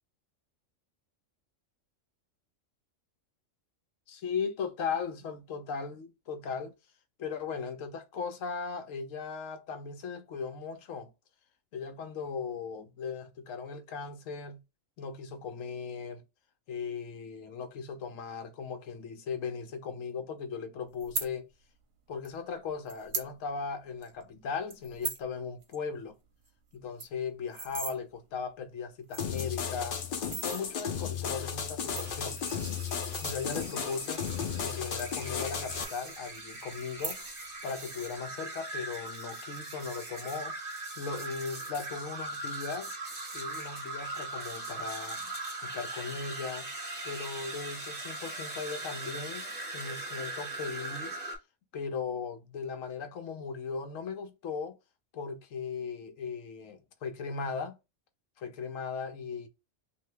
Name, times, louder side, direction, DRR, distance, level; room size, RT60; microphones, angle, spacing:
voice 1, 4.1-6.7 7.2-11.1 11.7-14.6 15.0-16.2 16.7-21.5 22.1-26.2 26.7-30.0 30.4-32.4 33.2-37.2 37.6-40.6 41.0-42.9 43.3-45.3 45.6-46.7 47.0-51.2 51.7-54.8 55.1-57.8 58.4-59.5, left 5 dB, 85° left, 1.0 m, -38 dB
sound 1, 21.0-21.3 22.2-22.3 22.9-23.3 23.7-23.8 24.0-24.2 24.7-25.3 25.6-25.8 26.0-26.1 26.4-26.5 26.8-27.9 28.6-28.7 29.0-29.6 30.1-30.6 31.6-33.8 34.5-35.5 35.8-36.4 36.9-37.5 37.8-38.2, right 4 dB, 55° right, 0.9 m, -39 dB
sound 2, 29.2-35.8, left 7 dB, 60° left, 0.6 m, -35 dB
sound 3, 31.9-51.4, right 2 dB, 25° right, 0.9 m, -40 dB
2.8 x 2.6 x 3.3 m
omnidirectional pair, 1.3 m